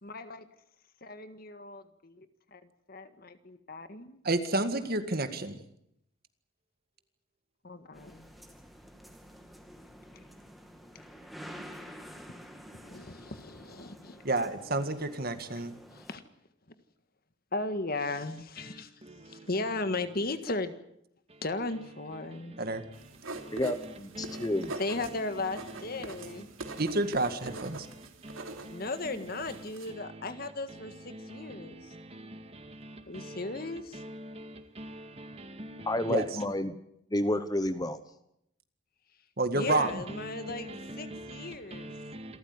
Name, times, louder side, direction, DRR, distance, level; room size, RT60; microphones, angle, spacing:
voice 1, 0.0-0.5 1.0-2.3 2.5-2.6 2.9-4.2 7.6-8.3 12.7-14.2 15.9-16.2 17.5-18.9 19.3-20.8 21.4-22.6 24.8-26.5 28.6-31.9 33.1-34.0 39.5-42.0, left 2 dB, 50° left, 1.7 m, -36 dB
voice 2, 4.2-5.6 14.2-15.7 22.6-22.8 26.8-27.9 36.1-36.3 39.4-40.0, right 2 dB, 50° right, 1.9 m, -29 dB
sound 1, 7.9-16.2, equal, ahead, 2.5 m, -49 dB
voice 3, 18.6-19.5 21.3-21.4 22.3-23.0 23.3-24.7 25.9-26.8 27.4-28.9 29.9-30.3 30.7-36.2 40.1-42.4, right 1 dB, 30° right, 1.9 m, -45 dB
sound 2, 22.9-29.9, right 2 dB, 85° right, 3.1 m, -44 dB
voice 4, 23.5-24.7 35.9-36.8 37.1-38.0, left 1 dB, 20° left, 1.0 m, -30 dB
27.5 x 14.0 x 9.6 m
head